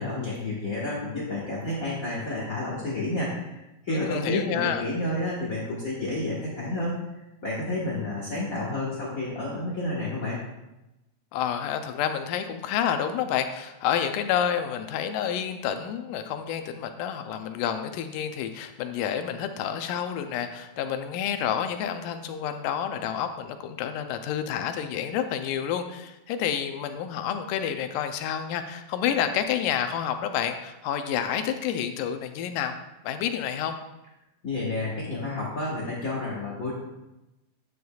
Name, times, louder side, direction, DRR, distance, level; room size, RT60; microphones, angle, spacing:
voice 1, 0.0-7.0 7.4-10.4 34.4-36.7, left 2 dB, 50° left, -6 dB, 1.0 m, -30 dB
voice 2, 3.9-4.8 11.3-32.8 33.0-33.8, left 9 dB, 80° left, 7 dB, 2.2 m, -29 dB
10.0 x 9.2 x 2.3 m, 0.97 s
omnidirectional pair, 3.8 m